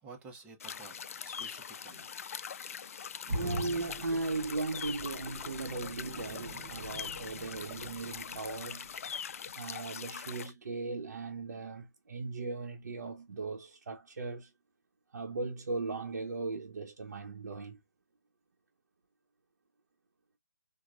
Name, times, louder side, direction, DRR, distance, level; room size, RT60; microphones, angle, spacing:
voice 1, 0.0-2.1, right 4 dB, 15° right, 0.8 m, -51 dB
sound 1, 0.6-10.5, left 7 dB, 55° left, 0.3 m, -42 dB
sound 2, 3.3-9.1 9.5-9.6, right 1 dB, 35° right, 1.0 m, -42 dB
voice 2, 3.3-8.9 9.6-14.5 15.1-17.8, right 3 dB, 75° right, 0.9 m, -38 dB
4.7 x 2.2 x 2.5 m
hypercardioid pair, 160°, 9 cm